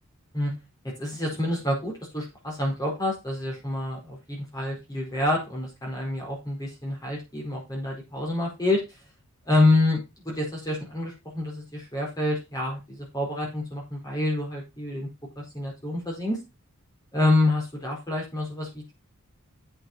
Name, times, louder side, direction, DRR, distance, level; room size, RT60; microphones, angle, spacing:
voice 1, 0.8-8.8 9.5-15.1 15.3-16.4 17.1-18.9, left 2 dB, 15° left, -2 dB, 4.8 m, -27 dB
9.0 x 7.9 x 4.5 m, 0.24 s
head